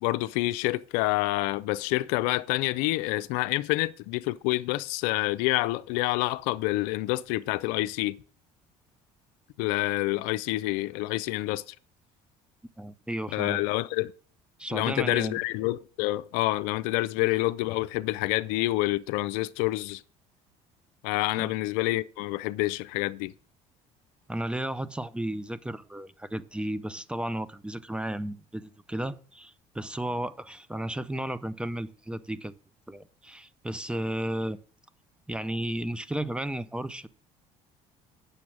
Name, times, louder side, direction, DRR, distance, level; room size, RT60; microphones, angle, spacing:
voice 1, 0.0-8.2 9.6-11.7 13.3-14.1 14.7-20.0 21.0-23.3, left 19 dB, 85° left, 0.4 m, -28 dB
voice 2, 12.8-13.7 14.6-15.4 21.4-21.5 24.3-32.5 32.9-34.6 35.3-37.1, right 1 dB, 5° right, 0.6 m, -33 dB
8.7 x 6.9 x 6.2 m
supercardioid pair, 95°, 14 cm